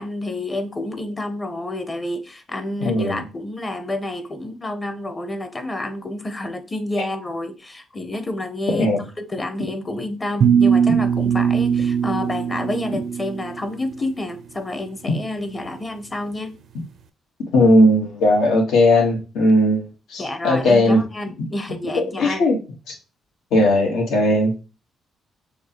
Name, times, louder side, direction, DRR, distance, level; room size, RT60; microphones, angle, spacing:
voice 1, 0.0-16.5 20.2-22.4, left 1 dB, 25° left, 0.8 m, -29 dB
voice 2, 2.8-3.2 8.7-9.0 17.5-21.0 21.9-22.6 23.5-24.6, left 1 dB, 80° left, 1.4 m, -17 dB
sound 1, 10.4-13.5, right 7 dB, 65° right, 0.5 m, -19 dB
6.5 x 2.4 x 2.9 m
cardioid pair, 90°, 0 cm